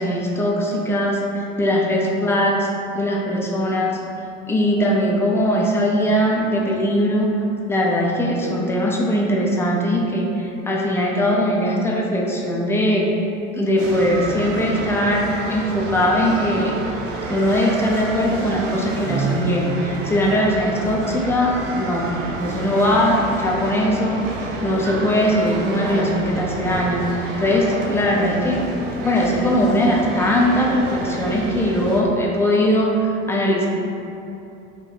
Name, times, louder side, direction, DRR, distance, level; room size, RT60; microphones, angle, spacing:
voice 1, 0.0-2.7 2.9-4.0 4.5-7.3 7.7-13.1 13.5-16.7 17.3-22.1 22.4-28.6 29.0-33.7, equal, 5° left, -2 dB, 0.4 m, -20 dB
sound 1, 13.8-32.0, right 2 dB, 85° right, 0.5 m, -29 dB
2.8 x 2.6 x 4.0 m, 2.8 s
figure-of-eight pair, 75°, 37 cm